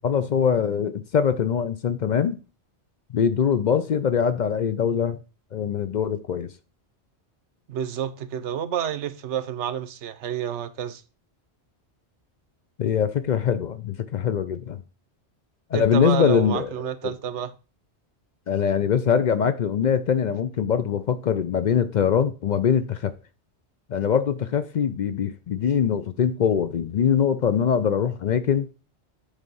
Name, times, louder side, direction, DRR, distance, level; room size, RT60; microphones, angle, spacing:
voice 1, 0.0-2.4 3.1-5.2 5.5-6.5 12.8-14.8 15.7-16.7 17.0-17.1 18.5-23.1 23.9-28.7, left 7 dB, 55° left, 0.5 m, -23 dB
voice 2, 7.7-11.0 15.7-17.5, right 9 dB, 90° right, 1.0 m, -29 dB
8.1 x 3.4 x 5.4 m
omnidirectional pair, 1.1 m